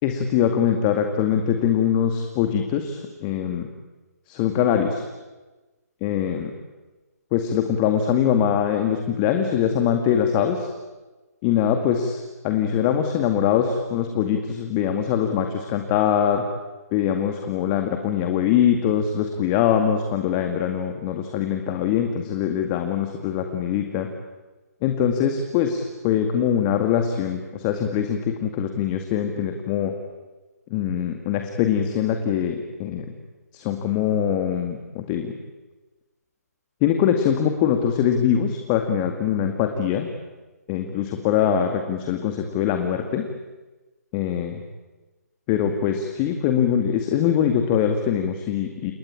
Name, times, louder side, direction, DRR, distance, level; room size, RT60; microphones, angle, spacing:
voice 1, 0.0-3.7 4.3-5.0 6.0-6.5 7.3-10.7 11.4-16.4 16.9-24.1 24.8-29.9 30.7-33.1 33.5-35.3 36.8-40.1 40.7-43.2 44.1-44.6 45.5-48.9, left 9 dB, 25° left, 5 dB, 2.0 m, -23 dB
29.5 x 19.0 x 8.9 m, 1.2 s
figure-of-eight pair, 140°, 9 cm